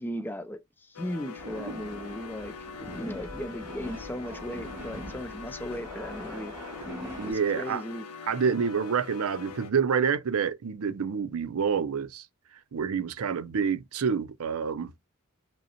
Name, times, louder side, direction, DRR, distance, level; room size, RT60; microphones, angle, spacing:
voice 1, 0.0-6.5 7.2-8.1, equal, 10° left, 0.4 m, -37 dB
sound 1, 0.9-9.7, left 7 dB, 85° left, 0.7 m, -43 dB
sound 2, 1.4-7.3, right 1 dB, 10° right, 2.1 m, -42 dB
voice 2, 7.2-7.8 8.3-12.3 12.7-15.1, right 6 dB, 70° right, 0.5 m, -28 dB
5.2 x 2.1 x 2.8 m
head